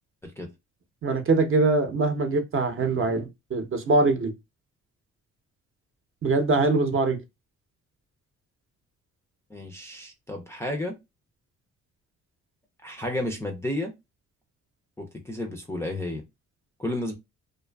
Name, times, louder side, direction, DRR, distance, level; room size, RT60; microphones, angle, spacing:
voice 1, 1.0-4.3 6.2-7.2, right 3 dB, 45° right, 0.7 m, -23 dB
voice 2, 9.5-11.0 12.8-13.9 15.0-16.2 16.8-17.1, left 1 dB, 10° left, 0.4 m, -32 dB
2.5 x 2.3 x 2.2 m
cardioid pair, 90°, 30 cm